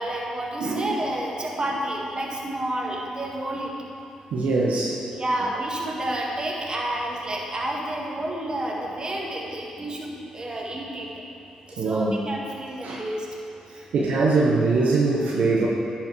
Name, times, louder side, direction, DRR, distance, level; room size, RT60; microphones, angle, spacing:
voice 1, 0.0-3.7 5.1-11.1 11.7-13.3, right 1 dB, 35° right, -2 dB, 1.8 m, -30 dB
voice 2, 0.6-0.9 4.3-5.0 11.8-12.2 12.8-13.0 13.7-15.7, right 3 dB, 75° right, -3 dB, 1.0 m, -22 dB
10.5 x 5.7 x 4.7 m, 2.7 s
supercardioid pair, 50°, 2 cm